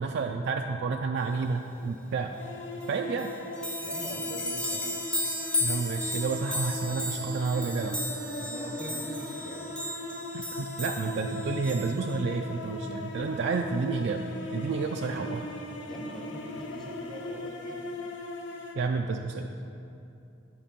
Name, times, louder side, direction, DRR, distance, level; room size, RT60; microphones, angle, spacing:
voice 1, 0.0-2.3 2.9-3.3 5.6-8.0 10.3-15.5 18.8-19.5, right 4 dB, 60° right, 3 dB, 0.4 m, -30 dB
sound 1, 2.4-18.7, left 1 dB, 65° left, 0.8 m, -39 dB
sound 2, 2.8-2.9 3.2-12.2, left 1 dB, 5° left, 0.6 m, -35 dB
voice 2, 3.8-4.9 8.4-9.7 15.8-17.9, equal, 25° left, -1 dB, 1.0 m, -43 dB
10.0 x 5.2 x 5.2 m, 2.8 s
head